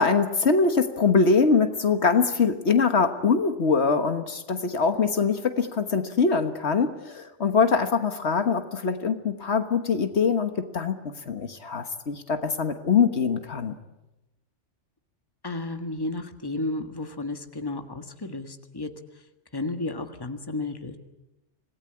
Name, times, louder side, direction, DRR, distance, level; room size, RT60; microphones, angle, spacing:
voice 1, 0.0-11.0 11.3-13.7, left 5 dB, 65° left, 8 dB, 1.6 m, -23 dB
voice 2, 15.4-18.9 19.5-21.0, left 2 dB, 20° left, 7 dB, 1.6 m, -32 dB
26.5 x 18.0 x 9.8 m, 0.99 s
omnidirectional pair, 1.2 m